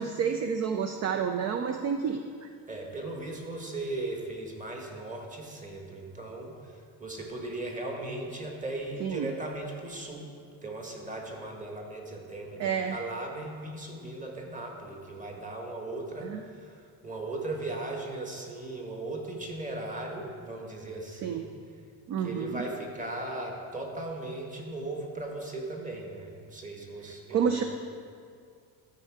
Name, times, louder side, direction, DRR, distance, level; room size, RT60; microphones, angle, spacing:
voice 1, 0.0-2.5 9.0-9.3 12.6-13.0 16.2-16.4 21.2-21.4 22.1-22.6 27.3-27.6, right 7 dB, 40° right, 6 dB, 0.4 m, -29 dB
voice 2, 2.7-10.3 10.6-21.5 22.2-27.6, right 2 dB, 20° right, 0 dB, 1.3 m, -38 dB
12.5 x 4.5 x 4.7 m, 2.2 s
cardioid pair, 135°, 44 cm